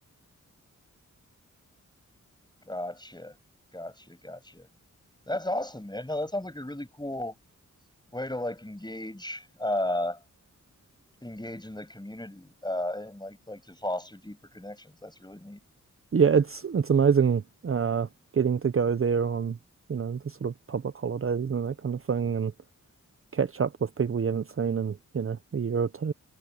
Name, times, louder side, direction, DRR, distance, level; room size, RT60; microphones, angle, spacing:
voice 1, 2.6-3.3 3.7-4.7 5.3-7.4 8.1-10.2 11.2-15.6, left 1 dB, 15° left, 6.7 m, -34 dB
voice 2, 16.1-18.1 18.3-19.6 19.9-22.5 23.3-26.1, right 6 dB, 45° right, 0.7 m, -26 dB
cardioid pair, 60°, 31 cm